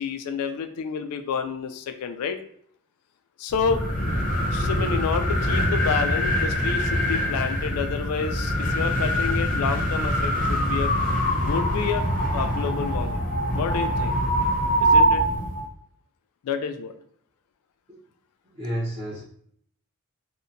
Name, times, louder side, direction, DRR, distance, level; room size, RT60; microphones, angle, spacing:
voice 1, 0.0-2.4 3.4-3.8 4.5-10.9 11.4-13.2 13.5-14.2 14.8-15.3 16.4-17.0, left 6 dB, 85° left, 9 dB, 0.3 m, -29 dB
sound 1, 3.5-15.6, equal, 35° left, 0.5 m, -24 dB
voice 2, 18.5-19.2, equal, 25° right, -10 dB, 0.7 m, -30 dB
2.7 x 2.1 x 2.5 m, 0.64 s
head